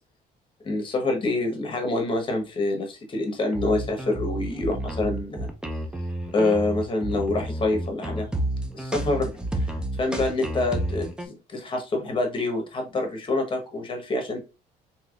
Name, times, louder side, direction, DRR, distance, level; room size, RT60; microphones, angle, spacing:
voice 1, 0.6-5.5 6.3-8.4 8.7-9.7 10.0-14.4, left 2 dB, 30° left, 3 dB, 1.0 m, -26 dB
sound 1, 3.5-11.3, right 1 dB, 5° right, 0.5 m, -30 dB
3.4 x 2.8 x 2.3 m, 0.29 s
cardioid pair, 110°, 17 cm